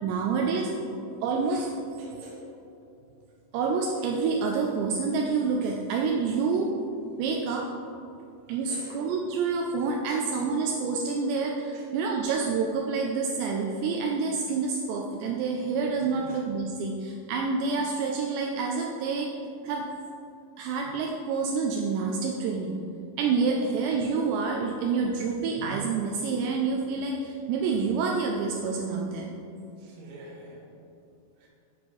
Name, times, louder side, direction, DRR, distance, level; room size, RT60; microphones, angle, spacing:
voice 1, 0.0-0.7 1.2-1.7 3.5-6.8 7.2-7.7 8.5-19.3 19.6-19.9 20.6-22.8 23.2-29.3, right 4 dB, 90° right, 1 dB, 2.5 m, -28 dB
voice 2, 2.0-2.4 8.7-9.0 10.1-10.2 11.7-11.9 16.2-16.4 29.8-30.7 31.4-31.5, right 2 dB, 70° right, -3 dB, 2.0 m, -46 dB
8.9 x 6.0 x 3.1 m, 2.7 s
omnidirectional pair, 5.5 m